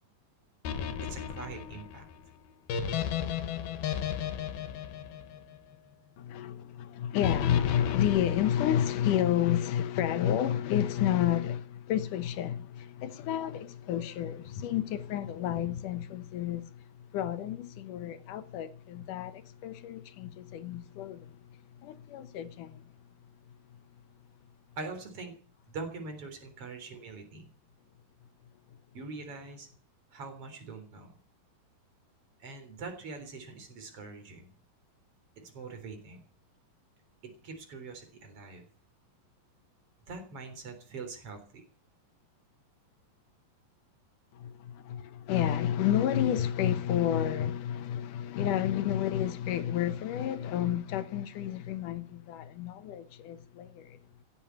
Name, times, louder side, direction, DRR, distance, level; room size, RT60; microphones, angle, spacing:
sound 1, 0.7-5.9 7.2-9.2, left 8 dB, 85° left, 3.4 m, -35 dB
voice 1, 1.0-2.1 24.8-25.4 25.7-27.5 28.9-29.7 30.1-31.2 32.4-34.5 35.5-36.2 37.2-38.6 40.1-41.6, right 4 dB, 40° right, 4.6 m, -43 dB
voice 2, 6.2-22.8 44.3-54.0, left 10 dB, 65° left, 2.5 m, -30 dB
16.0 x 9.0 x 8.4 m
omnidirectional pair, 4.2 m